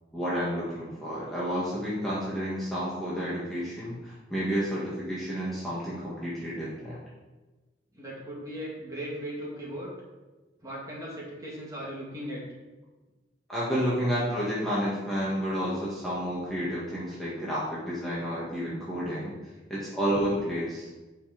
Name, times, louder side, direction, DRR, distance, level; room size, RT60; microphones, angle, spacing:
voice 1, 0.1-7.0 13.5-19.3 19.7-20.9, equal, ahead, -9 dB, 1.8 m, -30 dB
voice 2, 7.9-9.9 10.6-12.4 19.6-19.7, equal, 15° right, -5 dB, 2.3 m, -38 dB
8.7 x 5.6 x 5.1 m, 1.2 s
head